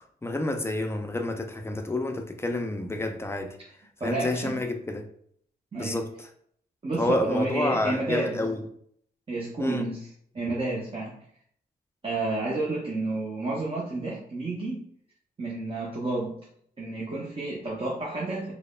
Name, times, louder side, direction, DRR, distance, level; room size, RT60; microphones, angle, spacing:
voice 1, 0.2-3.6 4.0-5.1 5.8-6.1 7.0-8.6 9.6-9.8, left 2 dB, 15° left, 0.4 m, -29 dB
voice 2, 4.0-4.6 5.7-6.0 6.8-8.4 9.3-10.1 10.3-11.2 12.0-14.8 15.4-16.4 16.8-18.5, right 2 dB, 30° right, 0.6 m, -30 dB
3.2 x 2.0 x 2.3 m
cardioid pair, 65°, 18 cm